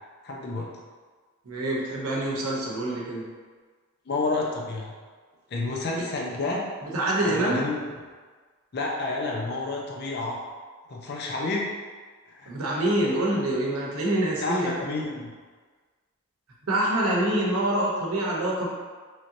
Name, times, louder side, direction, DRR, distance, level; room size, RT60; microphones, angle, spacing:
voice 1, 0.2-0.7 4.1-4.9 5.5-6.7 7.2-7.9 8.7-10.4 10.9-11.7 12.3-12.5 14.4-15.3, left 3 dB, 50° left, -1 dB, 0.5 m, -30 dB
voice 2, 1.4-3.2 6.9-7.6 12.5-15.0 16.7-18.7, right 1 dB, 80° right, -4 dB, 0.8 m, -26 dB
3.2 x 2.8 x 2.5 m, 1.5 s
head